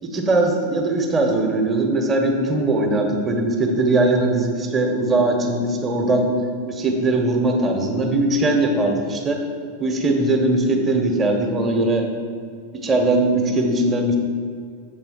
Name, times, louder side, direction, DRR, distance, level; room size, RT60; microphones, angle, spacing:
voice 1, 0.0-6.3 6.7-9.4 9.8-12.1 12.7-14.2, right 2 dB, 20° right, 3 dB, 1.1 m, -20 dB
7.5 x 4.3 x 5.9 m, 2.2 s
figure-of-eight pair, 90°, 0 cm